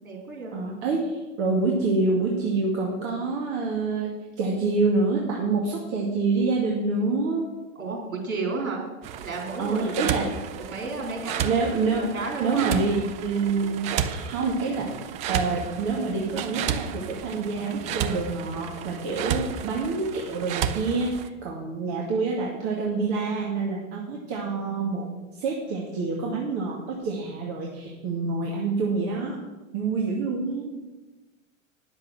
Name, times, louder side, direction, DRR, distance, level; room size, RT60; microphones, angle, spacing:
voice 1, 0.0-0.5 7.8-8.8 9.2-10.2 10.7-11.5 11.9-12.8, right 3 dB, 90° right, -1 dB, 3.7 m, -32 dB
voice 2, 0.5-7.5 9.6-10.3 11.4-12.0 12.4-14.9 15.3-25.1 25.4-29.4 29.7-30.8, right 3 dB, 45° right, -2 dB, 2.1 m, -27 dB
sound 1, 9.0-21.3, right 8 dB, 20° right, 0.3 m, -32 dB
10.0 x 6.8 x 6.2 m, 1.1 s
hypercardioid pair, 105°, 41 cm